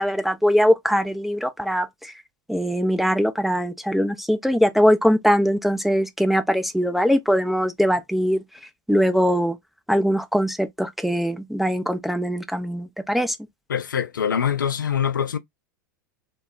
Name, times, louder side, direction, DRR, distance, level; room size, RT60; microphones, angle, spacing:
voice 1, 0.0-2.1 2.5-8.4 8.9-9.6 9.9-13.4, equal, ahead, 0.3 m, -21 dB
voice 2, 13.7-15.4, left 8 dB, 75° left, 0.4 m, -24 dB
2.2 x 2.0 x 3.6 m
figure-of-eight pair, 85°, 11 cm